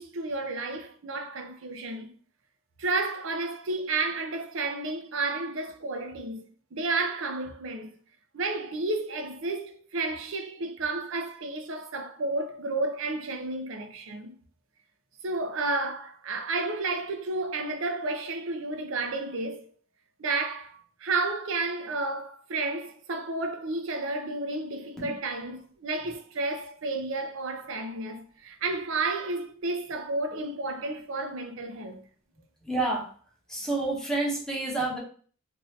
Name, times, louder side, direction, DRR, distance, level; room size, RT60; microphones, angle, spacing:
voice 1, 0.0-2.1 2.8-6.5 6.7-7.9 8.3-14.4 15.2-19.7 20.2-32.0, right 3 dB, 65° right, 0.6 m, -31 dB
voice 2, 32.6-33.1 33.5-35.0, right 2 dB, 5° left, 0.8 m, -29 dB
2.8 x 2.6 x 3.0 m
head